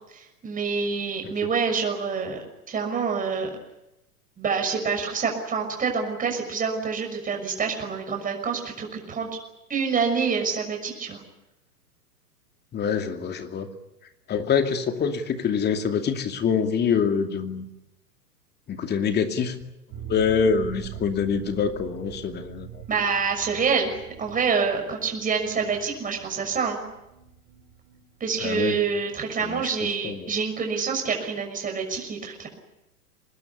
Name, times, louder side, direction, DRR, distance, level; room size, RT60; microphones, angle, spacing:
voice 1, 0.1-2.4 2.7-3.5 4.4-9.3 9.7-11.2 22.9-23.9 24.2-26.8 28.2-32.5, right 5 dB, 15° right, 3 dB, 6.2 m, -27 dB
voice 2, 12.7-13.7 14.3-17.6 18.7-19.6 20.1-22.8 28.4-28.8 29.4-29.7 30.0-30.3, left 6 dB, 20° left, 6 dB, 2.6 m, -25 dB
sound 1, 19.9-29.5 29.8-29.9 30.2-30.3, right 10 dB, 40° right, 3.8 m, -43 dB
25.0 x 20.0 x 9.9 m, 0.91 s
figure-of-eight pair, 100°, 48 cm